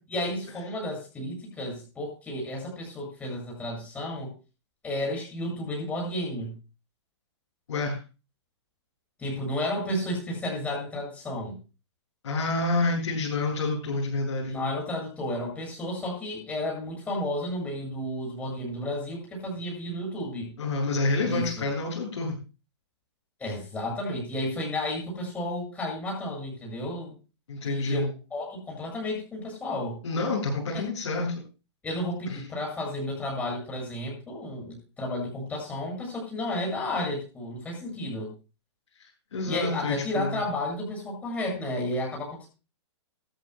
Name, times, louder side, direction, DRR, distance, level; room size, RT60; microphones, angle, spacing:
voice 1, 0.1-4.3 4.8-6.5 9.2-11.6 14.5-20.5 21.2-21.6 23.4-27.1 27.6-30.0 30.7-30.8 31.8-38.3 39.4-42.5, left 1 dB, 10° left, -1 dB, 7.4 m, -32 dB
voice 2, 7.7-8.0 12.2-14.6 20.6-22.3 27.5-28.1 30.0-31.4 32.3-32.4 39.0-40.4, left 2 dB, 90° left, -7 dB, 6.9 m, -28 dB
19.5 x 14.0 x 2.3 m, 0.31 s
hypercardioid pair, 165°, 15 cm